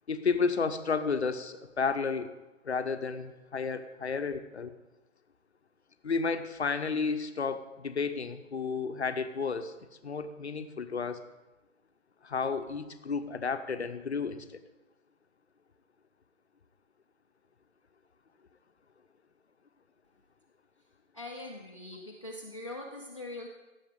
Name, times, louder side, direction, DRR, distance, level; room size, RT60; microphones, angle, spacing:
voice 1, 0.1-2.3 2.6-4.7 6.0-9.7 10.0-11.2 12.2-14.6, left 5 dB, 55° left, 9 dB, 0.8 m, -32 dB
voice 2, 21.1-23.5, left 2 dB, 25° left, 0 dB, 0.6 m, -42 dB
16.0 x 7.1 x 3.7 m, 1.1 s
figure-of-eight pair, 155°, 39 cm